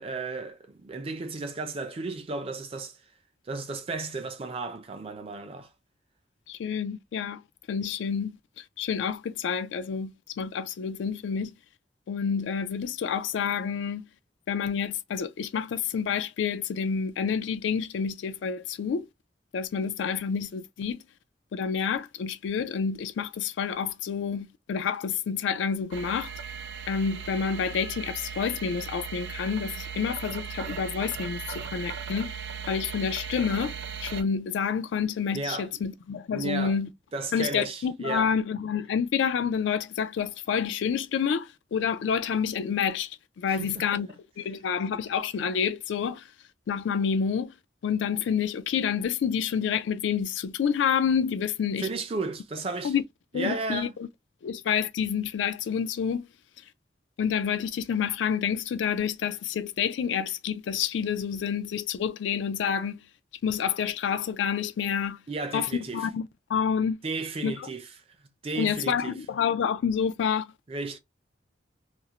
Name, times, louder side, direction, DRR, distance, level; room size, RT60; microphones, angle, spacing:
voice 1, 0.0-2.9 3.5-5.7 35.3-35.7 36.3-36.7 37.1-38.3 43.6-44.0 51.8-52.9 53.3-53.9 65.3-66.1 67.0-67.9 68.4-69.1 70.7-71.0, right 3 dB, 30° right, 0.4 m, -34 dB
voice 2, 6.5-7.4 7.7-8.3 8.8-11.5 12.1-14.1 14.5-19.1 19.5-21.0 21.5-26.3 26.9-32.3 32.7-36.9 37.3-44.1 44.4-46.2 46.7-47.5 47.8-51.9 52.8-53.0 53.3-54.1 54.4-56.3 57.2-63.0 63.4-65.2 65.5-67.0 67.4-67.7 68.6-70.5, left 7 dB, 80° left, 0.3 m, -28 dB
sound 1, 25.9-34.2, right 7 dB, 90° right, 0.4 m, -37 dB
2.5 x 2.0 x 2.7 m
head